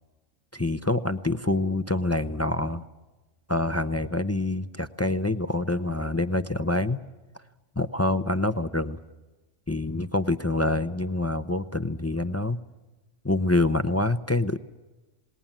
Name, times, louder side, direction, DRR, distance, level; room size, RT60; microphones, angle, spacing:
voice 1, 0.5-2.8 3.5-7.0 7.8-9.0 9.7-12.6 13.2-14.6, left 2 dB, 15° left, 11 dB, 0.5 m, -26 dB
28.0 x 20.0 x 7.4 m, 1.2 s
omnidirectional pair, 1.3 m